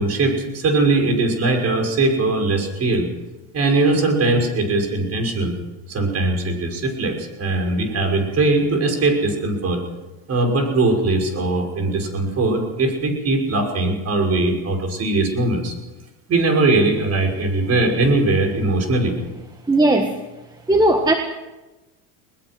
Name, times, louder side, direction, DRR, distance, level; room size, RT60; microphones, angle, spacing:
voice 1, 0.0-3.1 3.5-5.6 5.9-9.8 10.3-15.7 16.3-19.2, right 2 dB, 35° right, 3 dB, 6.0 m, -20 dB
voice 2, 19.7-20.2 20.7-21.1, right 1 dB, 10° right, 4 dB, 1.6 m, -16 dB
21.5 x 20.0 x 6.2 m, 1.1 s
supercardioid pair, 115°, 42 cm